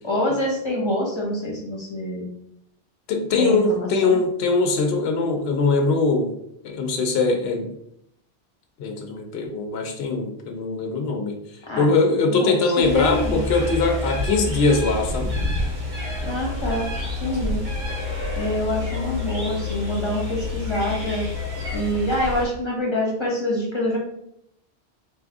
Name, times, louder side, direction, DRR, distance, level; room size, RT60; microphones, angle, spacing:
voice 1, 0.0-2.3 3.4-4.2 11.7-11.9 12.3-13.4 16.2-16.9 17.2-17.6 18.4-21.3 21.7-24.0, left 1 dB, 25° left, -2 dB, 1.1 m, -26 dB
voice 2, 3.1-6.3 6.6-7.7 8.8-11.4 11.8-15.3, left 3 dB, 70° left, 2 dB, 0.9 m, -21 dB
sound 1, 12.8-22.4, left 2 dB, 35° right, 1.2 m, -28 dB
4.0 x 2.6 x 3.4 m, 0.75 s
omnidirectional pair, 1.1 m